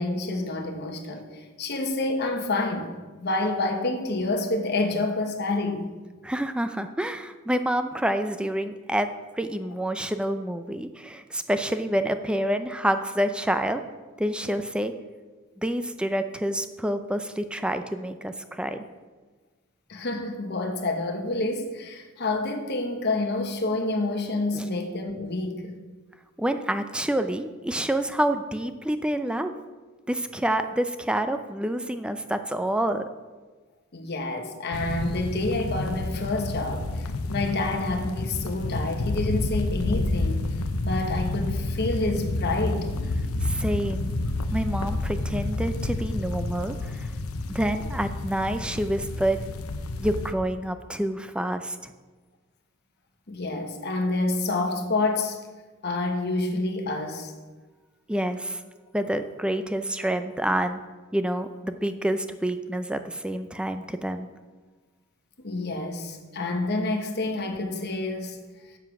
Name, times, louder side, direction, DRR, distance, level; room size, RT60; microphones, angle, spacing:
voice 1, 0.0-5.9 19.9-25.8 33.9-40.4 40.8-42.9 53.3-55.4 55.8-57.3 65.4-68.4, left 2 dB, 50° left, 1.2 m, -28 dB
voice 2, 6.2-9.1 9.3-13.8 14.2-14.9 15.6-18.8 24.5-24.7 26.4-29.5 30.1-33.0 43.4-44.1 44.5-47.1 47.5-49.4 50.0-51.9 58.1-58.6 58.9-60.8 61.1-64.3, right 1 dB, 5° right, 0.4 m, -28 dB
sound 1, 34.7-50.3, left 2 dB, 85° left, 0.7 m, -29 dB
7.8 x 7.3 x 5.9 m
head